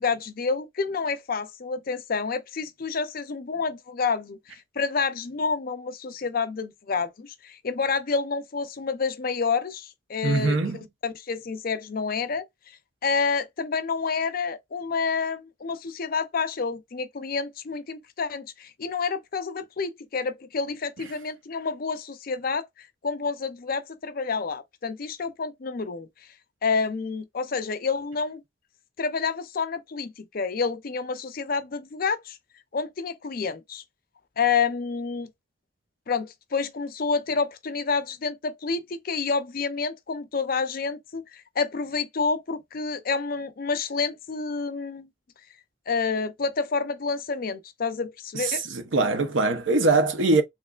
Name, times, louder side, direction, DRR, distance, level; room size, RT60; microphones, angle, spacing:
voice 1, 0.0-10.6 11.0-12.4 13.0-26.1 26.6-28.4 29.0-32.4 32.7-33.8 34.4-35.3 36.1-45.1 45.9-48.6, left 5 dB, 50° left, 0.5 m, -29 dB
voice 2, 10.2-10.8 48.3-50.4, right 3 dB, 90° right, 0.7 m, -22 dB
3.5 x 3.1 x 2.3 m
head